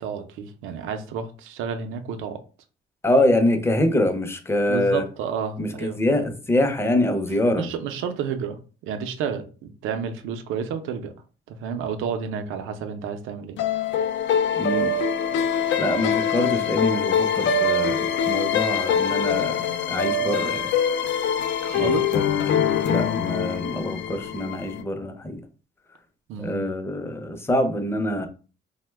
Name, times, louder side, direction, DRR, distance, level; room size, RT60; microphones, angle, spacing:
voice 1, 0.0-2.4 4.7-6.0 7.6-11.1 11.5-13.6 21.6-22.0 26.3-26.7, right 7 dB, 90° right, 0.5 m, -30 dB
voice 2, 3.0-5.0 5.6-7.7 14.6-14.9 15.8-20.7 21.7-22.3 22.8-25.4 26.4-28.3, left 1 dB, 10° left, 0.5 m, -24 dB
sound 1, 13.6-24.8, left 6 dB, 70° left, 0.4 m, -24 dB
2.8 x 2.1 x 3.3 m
cardioid pair, 90°, 20 cm